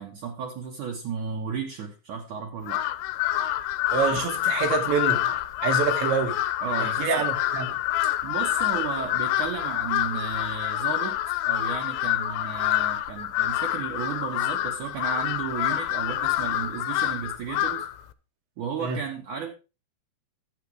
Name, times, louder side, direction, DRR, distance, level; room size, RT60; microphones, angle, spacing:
voice 1, 0.0-2.8 6.6-7.3 8.2-11.2 11.5-17.9 18.6-19.5, right 6 dB, 60° right, 2.4 m, -34 dB
Crow, 2.6-18.0, left 14 dB, 90° left, 3.0 m, -27 dB
voice 2, 3.9-6.4 6.8-7.8 18.8-19.0, right 6 dB, 80° right, 4.2 m, -27 dB
12.0 x 8.4 x 4.8 m
omnidirectional pair, 5.1 m